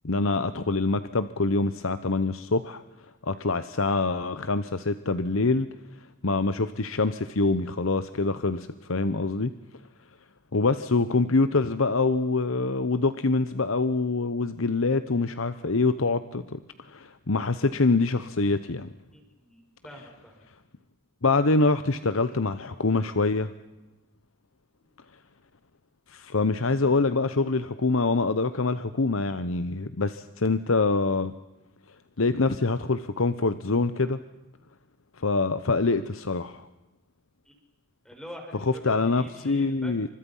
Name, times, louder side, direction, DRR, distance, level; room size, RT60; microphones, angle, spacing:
voice 1, 0.0-2.8 3.2-5.7 6.2-9.5 10.5-18.9 21.2-23.5 26.1-31.3 32.2-34.2 35.2-36.7 38.8-40.1, left 3 dB, 85° left, 11 dB, 1.0 m, -25 dB
voice 2, 19.1-20.5 22.3-22.4 37.5-37.6 38.0-40.1, equal, 5° left, 2 dB, 5.5 m, -46 dB
29.0 x 26.0 x 5.7 m, 0.98 s
head